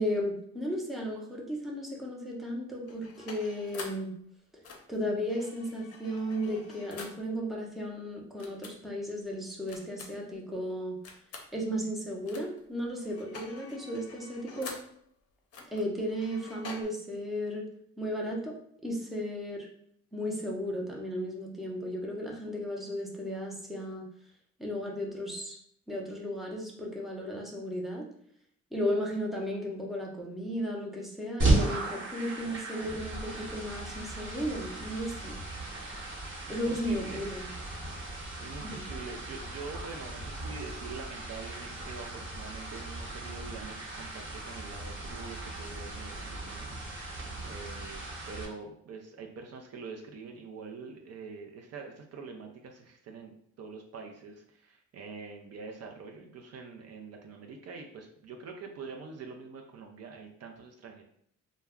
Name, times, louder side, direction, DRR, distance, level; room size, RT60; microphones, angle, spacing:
voice 1, 0.0-4.1 4.9-11.0 11.5-14.7 15.7-17.7 18.0-18.5 18.8-19.7 20.1-24.0 24.6-25.6 25.9-28.0 28.7-35.4 36.5-37.5 38.6-38.8, equal, ahead, -1 dB, 0.6 m, -34 dB
sound 1, 2.8-4.1 4.6-7.3 8.4-8.8 9.7-10.3 11.0-11.5 12.3-12.6 12.9-15.0 15.5-16.9, left 4 dB, 55° left, 0.6 m, -46 dB
sound 2, 31.4-48.4, right 2 dB, 40° right, 1.0 m, -35 dB
voice 2, 36.4-37.2 38.0-61.0, right 4 dB, 55° right, 2 dB, 0.5 m, -45 dB
2.2 x 2.1 x 3.5 m, 0.65 s
cardioid pair, 90°, 30 cm